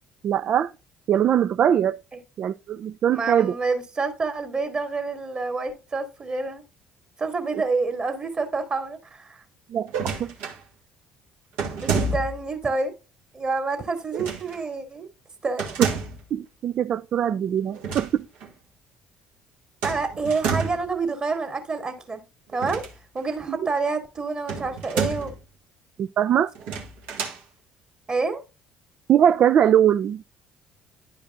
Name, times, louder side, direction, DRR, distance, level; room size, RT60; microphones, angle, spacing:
voice 1, 0.2-0.7 1.1-2.0 2.4-3.5 9.7-10.3 16.3-18.3 23.5-23.6 26.0-26.5 29.1-30.2, right 9 dB, 50° right, 0.4 m, -21 dB
voice 2, 3.1-6.6 7.2-9.4 11.8-12.9 13.3-15.1 15.4-15.7 19.8-22.2 22.5-22.8 23.1-25.3 28.1-28.4, right 4 dB, 35° right, 2.4 m, -28 dB
sound 1, 9.9-10.6 11.6-12.5 14.1-14.6 15.6-16.3 17.7-18.1 18.4-18.5 19.8-20.9 22.5-23.3 24.5-25.4 26.5-27.4, right 5 dB, 65° right, 1.6 m, -29 dB
11.0 x 5.1 x 2.5 m
hypercardioid pair, 55°, 3 cm